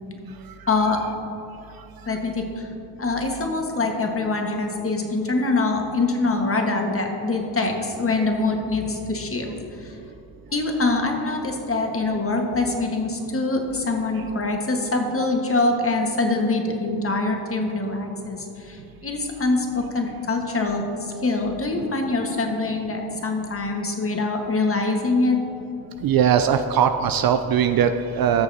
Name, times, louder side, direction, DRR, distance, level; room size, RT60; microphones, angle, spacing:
voice 1, 0.7-1.0 2.1-2.7 3.0-9.5 9.8-10.0 10.5-25.4, left 3 dB, 25° left, 2 dB, 1.4 m, -24 dB
voice 2, 26.0-28.4, right 8 dB, 50° right, 9 dB, 0.5 m, -20 dB
14.0 x 6.4 x 2.8 m, 2.9 s
hypercardioid pair, 50°, 49 cm